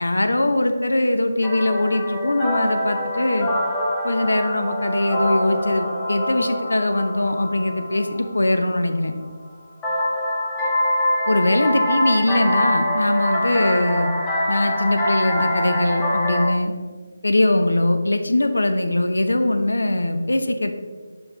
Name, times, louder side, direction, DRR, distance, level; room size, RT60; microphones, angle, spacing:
voice 1, 0.0-3.5 4.0-9.1 11.3-14.1 14.5-16.7 17.2-20.8, left 1 dB, 75° left, 7 dB, 0.7 m, -21 dB
sound 1, 1.4-8.9 9.8-16.4, left 1 dB, 15° left, 1.0 m, -24 dB
5.6 x 5.6 x 3.7 m, 1.5 s
figure-of-eight pair, 155°, 0 cm